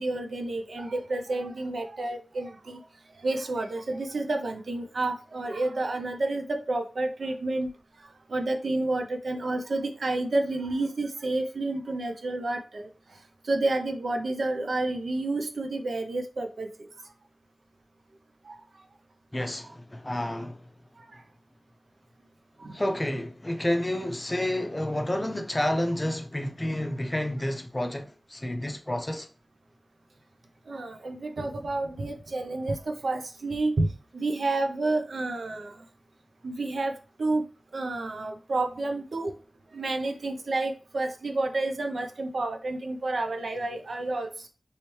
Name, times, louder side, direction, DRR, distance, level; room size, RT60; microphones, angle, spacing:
voice 1, 0.0-2.8 3.2-7.7 8.3-12.9 13.4-16.7 18.5-18.6 19.6-19.7 21.1-21.2 22.6-22.7 30.7-35.7 36.4-36.9 37.2-37.4 37.7-39.3 39.7-44.5, right 2 dB, 75° right, 0.5 m, -30 dB
voice 2, 19.3-20.7 22.7-29.3, left 1 dB, 20° left, 0.5 m, -30 dB
3.1 x 3.0 x 3.1 m
wide cardioid pair, 85°, 0 cm